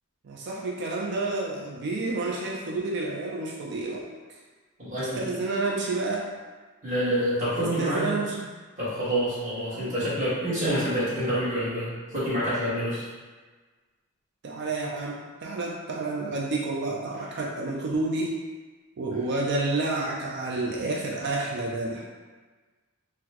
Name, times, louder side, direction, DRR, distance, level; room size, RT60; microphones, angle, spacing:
voice 1, 0.2-4.0 4.3-4.4 4.9-6.3 7.8-8.5 9.7-9.9 14.4-18.4 19.0-22.0, right 2 dB, 55° right, -2 dB, 0.4 m, -30 dB
voice 2, 4.8-5.3 6.8-8.2 8.8-13.1, equal, 35° right, -11 dB, 1.4 m, -27 dB
4.0 x 2.1 x 2.8 m, 1.4 s
head